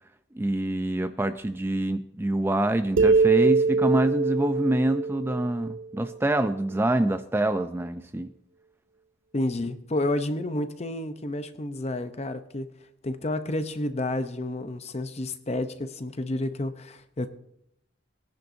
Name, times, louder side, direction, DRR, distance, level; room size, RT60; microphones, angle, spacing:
voice 1, 0.3-8.3, right 1 dB, 10° right, 9 dB, 0.3 m, -26 dB
sound 1, 3.0-6.5, right 3 dB, 85° right, 0.6 m, -24 dB
voice 2, 9.3-12.7 13.0-17.3, left 1 dB, 35° left, 10 dB, 0.7 m, -30 dB
20.0 x 10.5 x 2.7 m, 0.77 s
head